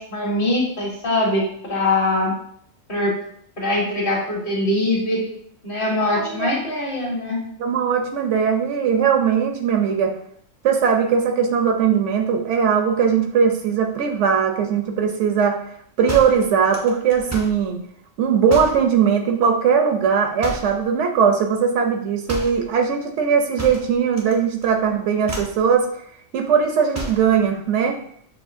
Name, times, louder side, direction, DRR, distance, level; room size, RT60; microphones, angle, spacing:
voice 1, 0.0-2.3 2.9-3.1 3.6-5.3 5.6-7.4, left 2 dB, 45° left, -3 dB, 1.3 m, -22 dB
voice 2, 6.2-6.5 7.6-10.1 10.6-15.6 16.0-17.8 18.2-25.9 26.3-28.0, right 7 dB, 70° right, 4 dB, 0.9 m, -19 dB
sound 1, 16.1-17.6 18.5-18.9 20.4-20.8 22.3-22.6 23.6-24.4 24.6-24.9 25.2-25.6 26.9-27.3, equal, 20° right, 0.4 m, -32 dB
6.1 x 2.7 x 2.6 m, 0.66 s
omnidirectional pair, 1.3 m